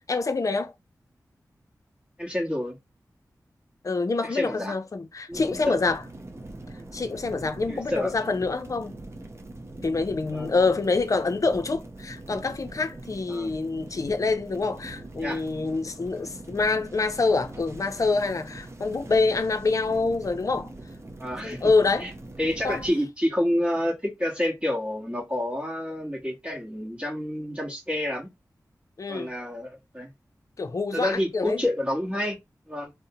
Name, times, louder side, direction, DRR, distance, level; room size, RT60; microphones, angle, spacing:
voice 1, 0.1-0.7 3.8-6.0 6.9-9.0 9.8-20.7 21.4-22.1 22.6-22.8 29.0-29.3 30.6-31.6, left 3 dB, 55° left, 0.5 m, -26 dB
voice 2, 2.2-2.8 4.2-4.8 5.3-5.8 7.7-8.1 10.3-10.5 13.3-13.5 15.2-15.4 21.2-21.6 22.0-22.1 22.4-28.3 29.1-30.1 30.9-32.4 32.7-32.9, left 1 dB, 15° right, 1.0 m, -28 dB
sound 1, 5.3-22.9, right 2 dB, 40° right, 0.6 m, -42 dB
2.6 x 2.1 x 2.6 m
cardioid pair, 45°, 7 cm